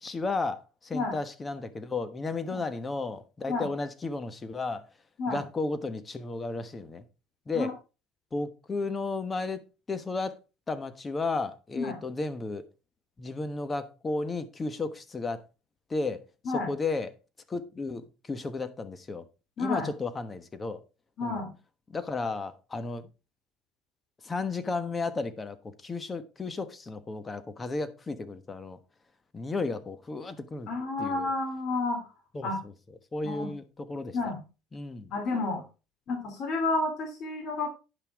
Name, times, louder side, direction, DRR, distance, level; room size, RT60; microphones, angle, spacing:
voice 1, 0.0-4.8 5.3-7.0 7.5-7.7 8.3-9.6 9.9-10.3 10.7-12.7 13.2-15.4 15.9-17.1 17.5-19.2 19.6-20.8 21.2-21.4 21.9-23.1 24.2-25.6 25.8-28.8 29.3-30.7 31.0-31.3 32.3-32.7 33.1-34.2 34.7-35.1, left 3 dB, 20° left, 1.2 m, -33 dB
voice 2, 19.6-19.9 21.2-21.5 30.7-32.0 32.4-32.6 33.2-33.5 34.1-34.4 35.1-35.6 36.1-37.7, left 3 dB, 50° left, 2.7 m, -30 dB
10.5 x 5.8 x 4.7 m
cardioid pair, 120°, 0 cm